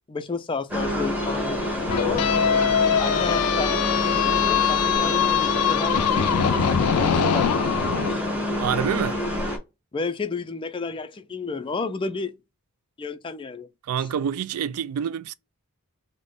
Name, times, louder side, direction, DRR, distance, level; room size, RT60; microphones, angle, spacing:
voice 1, 0.1-1.7 2.0-2.3 3.0-8.2 9.9-12.3 13.0-13.7 14.0-14.1, left 4 dB, 20° left, 0.3 m, -32 dB
sound 1, 0.7-9.6, left 1 dB, 5° right, 0.9 m, -27 dB
sound 2, 1.9-8.1, left 8 dB, 90° left, 0.4 m, -23 dB
voice 2, 8.6-9.2 13.9-15.3, right 8 dB, 75° right, 0.3 m, -27 dB
3.4 x 2.1 x 3.8 m
head